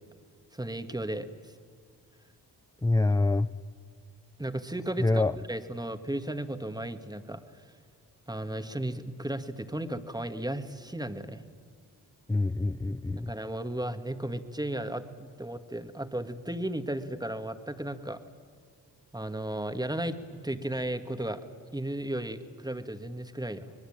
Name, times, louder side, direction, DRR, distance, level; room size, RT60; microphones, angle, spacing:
voice 1, 0.5-1.5 4.4-7.4 8.3-11.4 13.2-18.2 19.1-21.4 21.7-23.7, right 1 dB, 10° right, 8 dB, 2.1 m, -35 dB
voice 2, 2.8-3.5 5.0-5.3 12.3-13.3, left 2 dB, 10° left, 12 dB, 0.6 m, -25 dB
25.0 x 21.0 x 8.9 m, 2.1 s
supercardioid pair, 55°, 41 cm